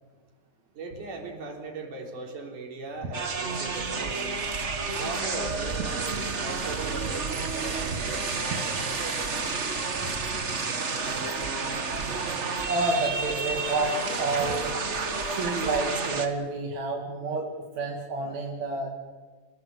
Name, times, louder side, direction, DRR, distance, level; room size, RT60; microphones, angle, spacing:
voice 1, 0.8-4.4 5.0-9.6, right 3 dB, 75° right, 1 dB, 5.2 m, -39 dB
sound 1, 3.1-16.3, right 4 dB, 35° right, 1.1 m, -30 dB
voice 2, 12.7-14.7 15.1-17.5 17.8-18.9, right 3 dB, 60° right, 0 dB, 3.5 m, -29 dB
30.0 x 17.5 x 8.2 m, 1.4 s
omnidirectional pair, 3.6 m